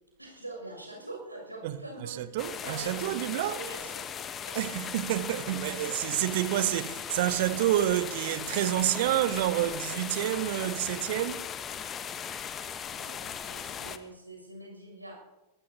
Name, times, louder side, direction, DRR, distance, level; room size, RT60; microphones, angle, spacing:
voice 1, 0.2-4.2 4.4-4.6 5.8-6.0 12.9-15.2, right 2 dB, 85° right, 6.7 m, -44 dB
voice 2, 1.6-3.6 4.6-11.5, right 14 dB, 50° right, 0.8 m, -29 dB
sound 1, 2.4-14.0, left 8 dB, 25° left, 1.1 m, -38 dB
22.5 x 19.5 x 2.9 m
figure-of-eight pair, 90°, 0 cm